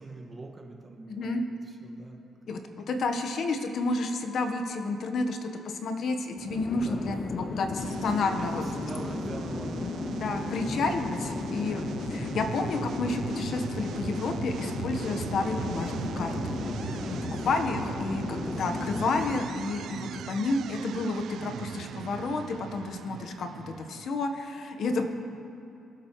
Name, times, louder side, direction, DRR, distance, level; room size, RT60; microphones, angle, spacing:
voice 1, 0.0-1.3 1.7-2.2 2.6-3.0 6.8-7.5 8.3-10.0 10.6-10.9 17.0-17.4 18.2-18.7 19.9-20.4 25.0-25.1, right 2 dB, 30° right, 2 dB, 1.7 m, -44 dB
voice 2, 1.1-1.5 2.5-8.6 9.8-17.2 17.4-25.0, left 3 dB, 65° left, 5 dB, 1.1 m, -31 dB
Chatter / Fixed-wing aircraft airplane, 6.3-19.7, left 4 dB, 40° left, 0.3 m, -35 dB
sound 1, 7.7-24.1, right 9 dB, 70° right, 0.3 m, -39 dB
24.0 x 8.0 x 3.1 m, 3.0 s
cardioid pair, 90°, 0 cm